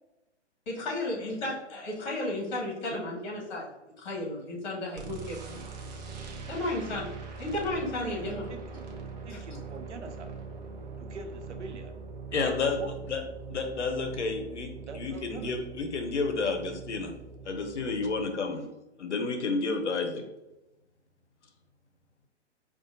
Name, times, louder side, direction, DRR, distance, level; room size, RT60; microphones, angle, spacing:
voice 1, 0.7-3.7 4.0-5.4 6.5-7.1 7.4-8.4 9.3-9.4, left 1 dB, 40° left, -3 dB, 1.5 m, -33 dB
sound 1, 5.0-18.3, right 4 dB, 35° right, 0.6 m, -42 dB
voice 2, 8.0-8.9 9.3-10.4 11.0-11.9 12.4-13.2 14.9-15.5, right 3 dB, 75° right, 6 dB, 0.7 m, -44 dB
voice 3, 12.3-12.8 13.1-13.2 13.5-17.1 17.4-18.7 19.0-20.2, left 4 dB, 70° left, 5 dB, 0.7 m, -30 dB
4.9 x 2.4 x 2.6 m, 0.98 s
figure-of-eight pair, 120°, 36 cm